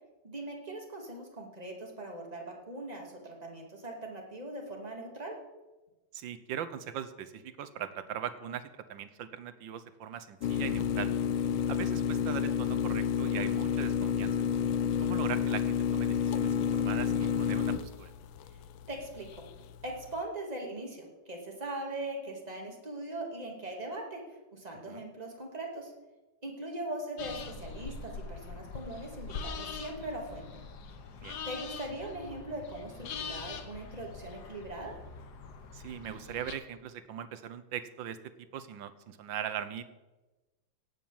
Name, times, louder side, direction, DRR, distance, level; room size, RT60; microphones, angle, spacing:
voice 1, 0.2-5.4 18.9-19.4 19.8-24.2 24.5-25.9 26.4-30.6 31.5-35.0, right 1 dB, 20° right, 0 dB, 2.4 m, -40 dB
voice 2, 6.1-11.1 11.7-14.4 15.0-18.1 24.9-25.0 31.2-31.4 35.7-38.2 38.5-39.8, right 9 dB, 70° right, 10 dB, 1.5 m, -40 dB
sound 1, 10.4-20.2, left 8 dB, 80° left, 1.5 m, -30 dB
sound 2, 27.2-36.5, left 5 dB, 60° left, 1.5 m, -43 dB
17.5 x 6.1 x 7.2 m, 1.1 s
omnidirectional pair, 2.2 m